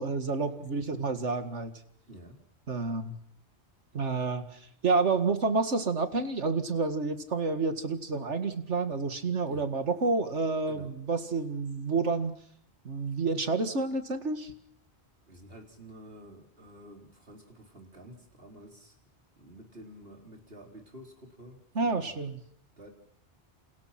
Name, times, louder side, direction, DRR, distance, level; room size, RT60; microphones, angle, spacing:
voice 1, 0.0-1.7 2.7-3.2 3.9-12.3 12.8-14.5 21.8-22.4, right 4 dB, 90° right, 8 dB, 2.3 m, -29 dB
voice 2, 0.6-1.0 2.1-2.4 9.5-9.7 10.7-10.9 15.3-19.0 19.4-22.2 22.8-22.9, right 1 dB, 60° right, 1 dB, 4.6 m, -50 dB
29.5 x 28.5 x 6.0 m, 0.67 s
omnidirectional pair, 1.2 m